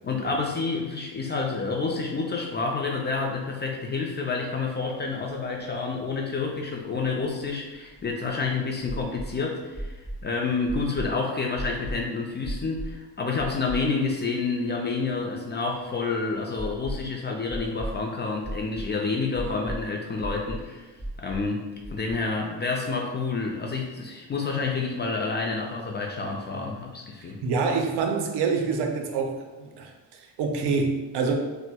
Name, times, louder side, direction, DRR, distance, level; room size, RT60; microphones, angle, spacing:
voice 1, 0.0-20.9 21.2-27.4, left 4 dB, 25° left, 0 dB, 0.3 m, -29 dB
sound 1, 5.1-5.2 5.4-5.5 7.0-8.3 8.8-9.3 9.7-10.2 10.7-11.1 11.5-12.0 12.4-12.9 13.4-14.1 14.5-14.6 16.6-17.1 17.5-18.0 18.4-18.9 19.3-19.8 20.2-20.6 21.0-21.4 21.8-22.1, right 1 dB, 10° right, 1.3 m, -35 dB
voice 2, 27.2-31.3, right 4 dB, 70° right, 3 dB, 0.6 m, -27 dB
4.1 x 2.1 x 2.2 m, 1.2 s
cardioid pair, 95°, 42 cm